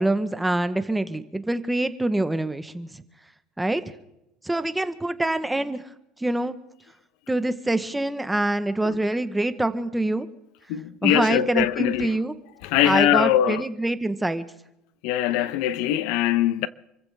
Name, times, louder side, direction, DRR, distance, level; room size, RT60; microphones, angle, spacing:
voice 1, 0.0-3.0 3.6-3.8 4.4-5.8 6.2-6.6 7.3-10.3 11.0-12.3 12.8-14.4, right 1 dB, 5° right, 1.0 m, -25 dB
voice 2, 10.7-12.2 12.6-13.6 15.0-16.7, left 12 dB, 70° left, 0.7 m, -22 dB
28.5 x 15.0 x 3.4 m
cardioid pair, 145°, 0 cm